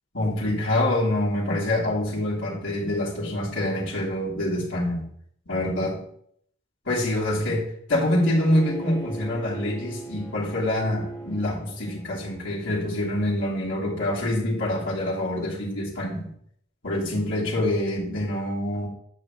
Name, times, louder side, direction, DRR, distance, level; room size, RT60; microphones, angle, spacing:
voice 1, 0.1-5.1 5.5-6.0 6.9-16.3 16.8-18.9, left 1 dB, 75° left, -8 dB, 3.0 m, -26 dB
Bowed string instrument, 8.1-13.2, right 3 dB, 20° left, 1.8 m, -39 dB
9.1 x 6.2 x 3.8 m, 0.67 s
head